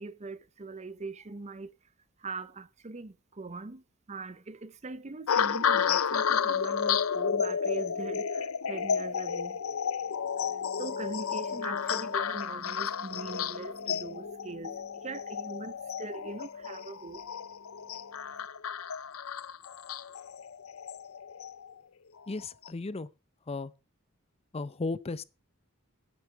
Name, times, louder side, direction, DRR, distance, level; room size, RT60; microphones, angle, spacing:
voice 1, 0.0-1.7 2.2-9.6 10.4-18.5, right 3 dB, 30° right, 0.7 m, -42 dB
sound 1, 5.3-21.7 22.4-22.7, left 7 dB, 70° left, 0.6 m, -32 dB
voice 2, 22.3-23.1 23.5-23.7 24.5-25.2, left 3 dB, 30° left, 0.5 m, -35 dB
10.0 x 9.6 x 4.6 m
head